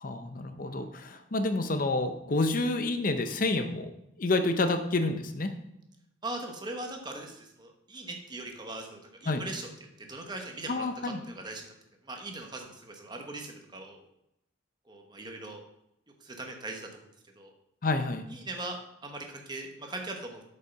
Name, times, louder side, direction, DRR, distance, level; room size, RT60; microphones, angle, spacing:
voice 1, 0.0-3.9 4.2-5.5 9.3-9.4 10.7-11.2 17.8-18.2, left 2 dB, 45° left, 8 dB, 0.6 m, -29 dB
voice 2, 6.2-9.7 10.0-11.7 12.0-14.0 14.9-15.6 16.2-16.9 17.4-17.5 18.3-20.4, right 2 dB, 20° right, 3 dB, 1.1 m, -40 dB
8.2 x 5.5 x 5.7 m, 0.83 s
head